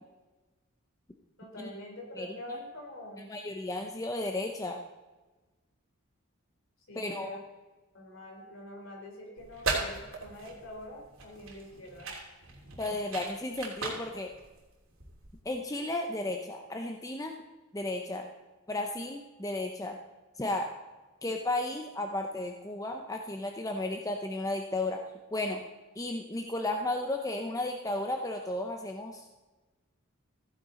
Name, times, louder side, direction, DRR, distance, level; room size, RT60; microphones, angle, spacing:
voice 1, 1.4-3.3 6.9-7.4 7.9-12.1 26.8-26.9, left 1 dB, 60° left, 0 dB, 3.5 m, -45 dB
voice 2, 2.1-2.6 3.2-4.8 7.0-7.3 12.8-14.3 15.4-17.3 17.7-18.3 18.7-20.0 20.4-20.7 21.2-25.0 25.3-25.6 25.9-29.3, left 2 dB, 15° left, 3 dB, 0.6 m, -34 dB
sound 1, 9.4-15.4, right 3 dB, 65° right, 3.0 m, -38 dB
15.0 x 10.5 x 3.8 m, 1.2 s
head